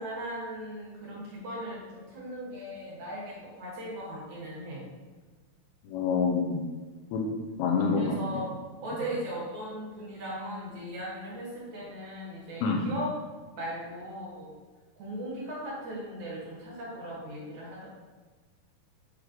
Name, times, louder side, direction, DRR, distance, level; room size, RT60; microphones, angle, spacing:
voice 1, 0.0-4.8 7.9-8.5 8.8-13.1 13.6-14.5 15.0-17.9, right 1 dB, 60° right, -5 dB, 2.2 m, -38 dB
voice 2, 5.8-6.6 7.1-7.2 7.6-8.1 8.9-9.0 12.6-12.8, left 5 dB, 85° left, 1 dB, 2.7 m, -26 dB
8.8 x 3.2 x 3.7 m, 1.3 s
omnidirectional pair, 4.5 m